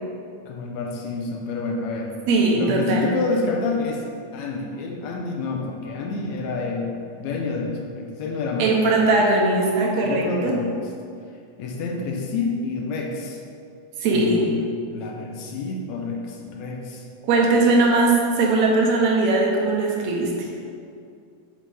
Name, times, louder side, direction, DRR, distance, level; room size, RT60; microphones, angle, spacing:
voice 1, 0.5-2.1 2.5-4.0 4.3-6.9 7.2-9.0 10.0-10.9 11.6-13.4 14.1-17.1, left 4 dB, 75° left, 0 dB, 1.8 m, -28 dB
voice 2, 2.3-3.1 8.6-10.5 14.0-14.4 17.2-20.3, right 3 dB, 70° right, -1 dB, 2.0 m, -19 dB
7.4 x 5.2 x 3.4 m, 2.4 s
omnidirectional pair, 3.6 m